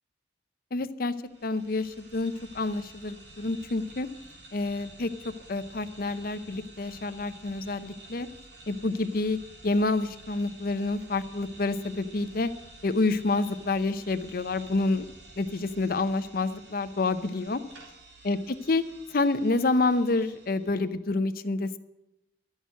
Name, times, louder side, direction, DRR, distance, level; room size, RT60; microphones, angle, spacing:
voice 1, 0.7-1.1 1.4-4.1 4.5-5.1 5.5-8.3 8.7-9.4 9.6-12.5 12.8-15.1 15.4-17.6 18.2-18.4 18.7-18.8 19.1-21.8, left 3 dB, 55° left, 11 dB, 0.7 m, -28 dB
sound 1, 1.2-20.9, right 2 dB, 85° right, 2.9 m, -51 dB
12.5 x 6.4 x 9.2 m, 0.95 s
head